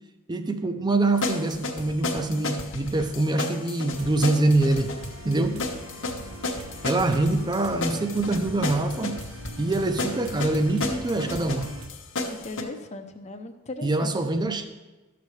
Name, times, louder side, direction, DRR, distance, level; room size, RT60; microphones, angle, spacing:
voice 1, 0.3-4.9 5.2-5.6 6.8-9.2 9.6-11.7 13.8-14.7, right 2 dB, 20° right, 8 dB, 0.5 m, -24 dB
sound 1, 1.2-12.6, left 2 dB, 55° left, 0.9 m, -32 dB
sound 2, 4.0-11.9, right 1 dB, 60° right, 1.0 m, -42 dB
voice 2, 5.3-5.7 12.2-14.3, left 2 dB, 30° left, 8 dB, 0.6 m, -38 dB
12.0 x 6.8 x 3.2 m, 1.2 s
head